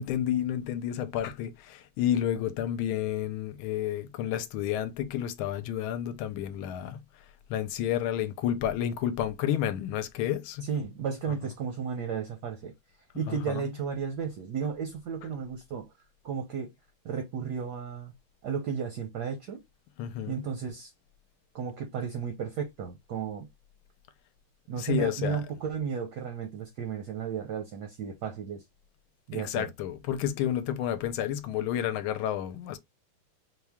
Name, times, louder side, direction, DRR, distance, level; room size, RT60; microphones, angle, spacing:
voice 1, 0.0-7.0 7.5-10.7 13.3-13.7 20.0-20.4 24.8-25.4 29.3-32.8, left 10 dB, 80° left, 1.4 m, -30 dB
voice 2, 10.6-12.7 13.1-15.9 16.2-16.7 17.0-18.1 18.4-19.6 20.3-20.9 21.5-23.5 24.7-28.6 29.3-29.7, right 6 dB, 70° right, 1.0 m, -33 dB
4.4 x 2.2 x 3.5 m
omnidirectional pair, 2.4 m